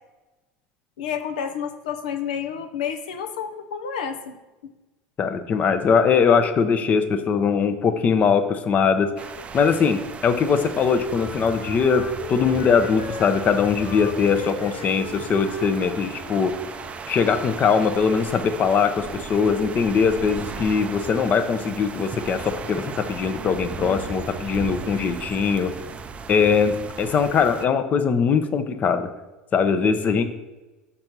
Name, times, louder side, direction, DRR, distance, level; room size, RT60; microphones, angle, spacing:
voice 1, 1.0-4.3, left 7 dB, 80° left, 8 dB, 0.7 m, -30 dB
voice 2, 5.2-9.1 9.5-12.0 12.3-16.5 17.1-25.7 26.3-29.1 29.5-30.2, left 6 dB, 35° left, 9 dB, 0.7 m, -21 dB
sound 1, 9.2-27.6, right 5 dB, 30° right, 0.5 m, -36 dB
Wind instrument woodwind instrument, 10.6-17.0, left 3 dB, 55° left, 1.4 m, -38 dB
5.4 x 4.3 x 6.0 m, 1.1 s
hypercardioid pair, 90°, 4 cm